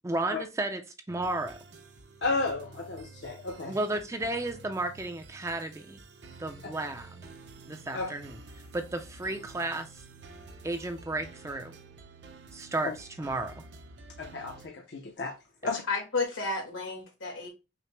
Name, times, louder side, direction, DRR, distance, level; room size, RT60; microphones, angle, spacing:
voice 1, 0.0-0.8 1.1-1.6 3.7-6.0 6.4-7.1 7.7-8.4 8.7-10.0 10.6-11.7 12.5-13.6, right 2 dB, 15° right, 0.4 m, -33 dB
sound 1, 1.1-14.7, right 3 dB, 65° right, 0.6 m, -50 dB
voice 2, 2.2-3.7 7.9-8.1 12.8-12.9 14.2-15.4 15.7-15.8, left 3 dB, 60° left, 0.5 m, -33 dB
voice 3, 15.9-17.5, left 3 dB, 90° left, 1.5 m, -32 dB
5.7 x 2.0 x 3.2 m
head